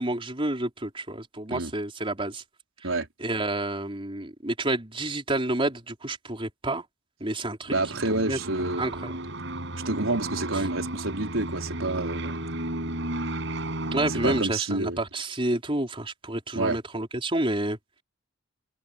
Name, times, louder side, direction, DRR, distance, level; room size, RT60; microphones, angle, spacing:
voice 1, 0.0-2.4 3.2-6.8 7.2-7.8 8.3-8.4 8.8-9.1 13.9-17.8, right 2 dB, 25° right, 4.4 m, -29 dB
sound 1, 7.7-14.4, right 1 dB, 65° right, 6.3 m, -33 dB
voice 2, 7.7-8.9 9.8-12.4 14.1-15.0 16.5-16.8, right 2 dB, 80° right, 4.5 m, -28 dB
head